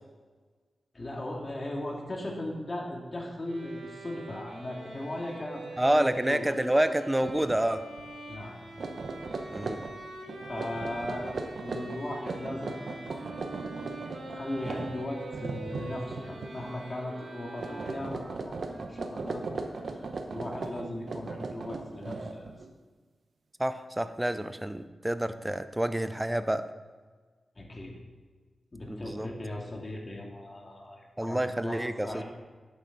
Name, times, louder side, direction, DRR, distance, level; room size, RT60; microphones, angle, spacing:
voice 1, 0.9-6.5 8.3-8.6 10.5-13.0 14.0-19.4 19.8-22.5 27.6-28.0 28.7-32.2, left 1 dB, 35° left, -1 dB, 2.5 m, -38 dB
sound 1, 3.5-18.4, right 2 dB, 85° right, 2.2 m, -44 dB
voice 2, 5.8-7.8 9.5-9.8 23.6-26.6 28.9-29.3 31.2-32.2, right 1 dB, 10° right, 11 dB, 0.6 m, -28 dB
sound 2, 7.2-7.6 7.9-8.1 8.6-16.7 17.0-17.3 17.6-22.7, right 3 dB, 65° right, 1.0 m, -38 dB
Wind instrument woodwind instrument, 12.6-20.2, right 1 dB, 45° right, 2.3 m, -50 dB
11.0 x 8.5 x 4.1 m, 1.4 s
cardioid pair, 70°, 0 cm